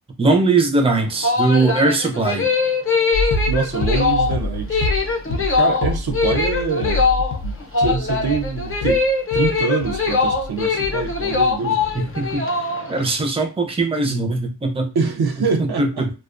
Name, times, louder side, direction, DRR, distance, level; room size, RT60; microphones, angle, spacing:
voice 1, 0.2-2.5 11.9-12.5 12.9-15.0 15.6-16.1, right 3 dB, 15° right, 0.5 m, -20 dB
sound 1, 1.0-13.1, left 4 dB, 35° left, 0.6 m, -21 dB
sound 2, 3.1-11.5 11.8-12.4, left 2 dB, 85° left, 0.5 m, -27 dB
voice 2, 3.5-4.9 5.3-7.1 7.4-9.0 9.3-11.8 14.9-16.1, right 5 dB, 70° right, 0.5 m, -24 dB
2.4 x 2.2 x 2.4 m
wide cardioid pair, 45°, 40 cm